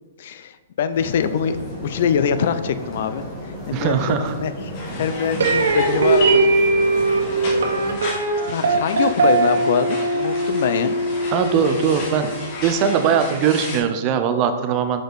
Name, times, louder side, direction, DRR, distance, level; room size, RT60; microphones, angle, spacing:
voice 1, 0.2-3.2 3.7-4.5 5.0-6.5 7.3-7.7 8.4-11.0, left 7 dB, 50° left, 11 dB, 0.4 m, -24 dB
sound 1, 0.9-7.9, equal, 15° left, 1.5 m, -34 dB
voice 2, 3.7-4.4 11.3-12.3 12.6-15.0, right 7 dB, 25° right, 8 dB, 0.5 m, -20 dB
sound 2, 4.7-13.8, equal, 35° left, 1.3 m, -32 dB
sound 3, 5.4-12.5, right 3 dB, 75° right, 1.2 m, -20 dB
6.2 x 5.1 x 4.0 m, 1.2 s
hypercardioid pair, 160°, 0 cm